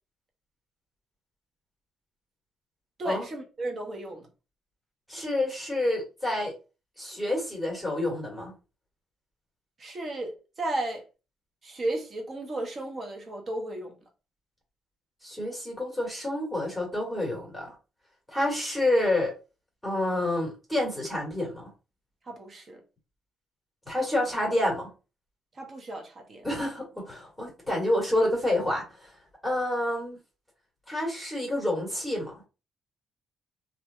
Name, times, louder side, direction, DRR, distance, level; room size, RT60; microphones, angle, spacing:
voice 1, 3.0-4.3 9.8-11.0 11.6-13.9 22.3-22.8 25.5-26.4, right 2 dB, 45° right, 0.9 m, -34 dB
voice 2, 5.1-6.5 7.0-8.5 15.2-17.7 18.3-19.3 19.8-21.7 23.9-24.9 26.4-29.1 29.4-30.2 30.9-32.3, left 1 dB, ahead, 1.5 m, -28 dB
2.7 x 2.5 x 2.2 m
cardioid pair, 90°, 0 cm